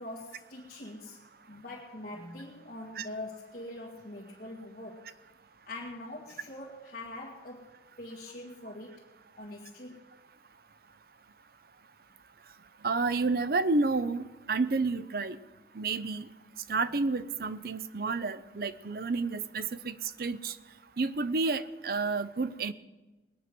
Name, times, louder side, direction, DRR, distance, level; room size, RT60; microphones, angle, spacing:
voice 1, 0.0-5.2 5.7-9.0 9.4-10.0, left 1 dB, 45° left, -6 dB, 1.9 m, -43 dB
voice 2, 12.8-15.4 15.7-16.3 16.7-20.6 21.0-22.7, right 3 dB, 55° right, 13 dB, 0.6 m, -30 dB
20.0 x 9.4 x 6.1 m, 1.1 s
head